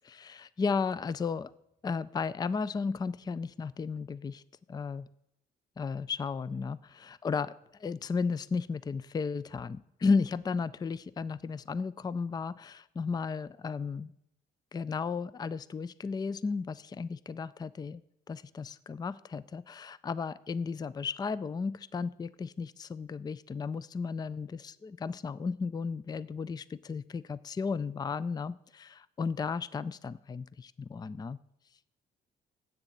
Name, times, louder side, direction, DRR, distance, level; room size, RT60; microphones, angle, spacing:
voice 1, 0.0-1.5 1.8-4.4 4.7-5.1 5.8-7.5 7.8-14.1 14.7-31.4, left 5 dB, 20° left, 19 dB, 0.4 m, -34 dB
8.2 x 6.9 x 7.9 m, 0.77 s
cardioid pair, 90°, 20 cm